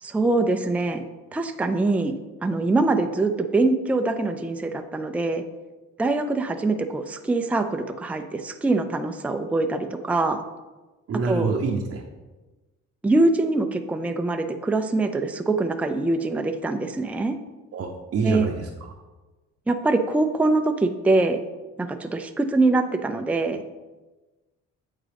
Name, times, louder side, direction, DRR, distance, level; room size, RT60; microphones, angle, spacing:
voice 1, 0.0-1.0 1.3-2.1 2.4-5.4 6.0-10.4 11.2-11.5 13.0-17.4 18.2-18.5 19.7-21.4 21.8-23.6, right 2 dB, 5° right, 6 dB, 0.4 m, -23 dB
voice 2, 11.1-12.0 17.7-18.9, right 4 dB, 50° right, 0 dB, 0.7 m, -26 dB
8.6 x 3.6 x 3.4 m, 1.2 s
cardioid pair, 90°, 30 cm